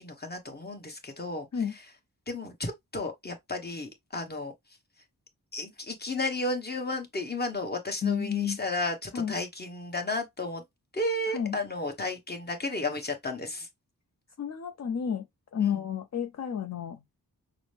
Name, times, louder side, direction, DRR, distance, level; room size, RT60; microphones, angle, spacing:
voice 1, 0.0-1.5 1.7-1.8 2.3-4.5 5.5-10.6 10.9-13.7 15.6-15.8, left 2 dB, 25° left, 1.2 m, -33 dB
voice 2, 8.0-8.6 9.1-9.3 11.3-11.5 14.4-15.3 15.5-17.2, left 8 dB, 50° left, 0.6 m, -30 dB
6.0 x 2.0 x 3.3 m
wide cardioid pair, 115°, 35 cm